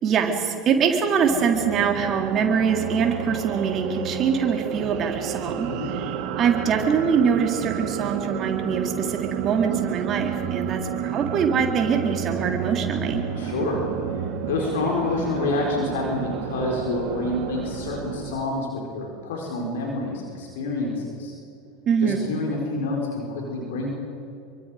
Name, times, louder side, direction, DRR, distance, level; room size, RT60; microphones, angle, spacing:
voice 1, 0.0-5.7 6.4-13.2 21.9-22.2, right 6 dB, 40° right, 2 dB, 3.5 m, -23 dB
sound 1, 1.2-18.4, right 9 dB, 55° right, 1.5 m, -31 dB
voice 2, 13.3-13.8 14.1-18.7 18.9-21.3 22.0-23.9, left 2 dB, 70° left, -1 dB, 4.5 m, -28 dB
27.0 x 24.0 x 5.1 m, 2.6 s
figure-of-eight pair, 80°, 0 cm